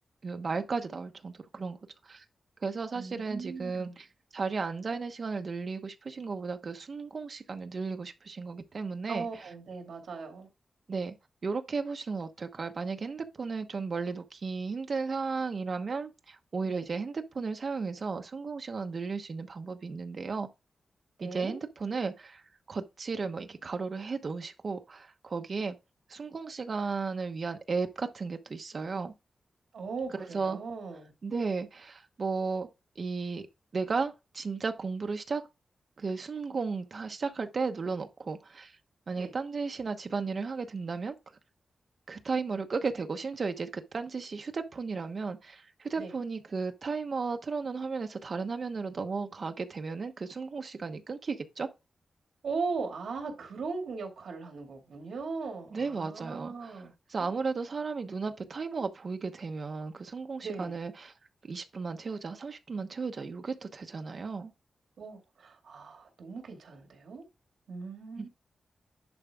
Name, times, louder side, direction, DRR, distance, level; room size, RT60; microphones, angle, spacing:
voice 1, 0.2-1.8 2.0-2.2 2.6-4.1 4.3-9.5 10.9-11.1 11.4-20.5 21.2-25.8 26.1-29.1 30.2-30.6 31.2-32.7 33.0-33.5 33.7-35.4 36.0-38.8 39.1-41.2 42.1-51.7 55.7-56.8 57.1-61.1 61.5-64.5 68.2-68.3, right 4 dB, 40° right, 0.9 m, -34 dB
voice 2, 2.9-3.9 9.1-10.5 16.6-16.8 21.2-21.6 29.7-31.1 39.2-39.3 46.0-46.1 52.4-56.9 57.2-57.4 60.4-60.8 65.0-67.2 67.7-68.3, right 4 dB, 75° right, 2.3 m, -38 dB
10.5 x 4.5 x 3.6 m
wide cardioid pair, 165°, 0 cm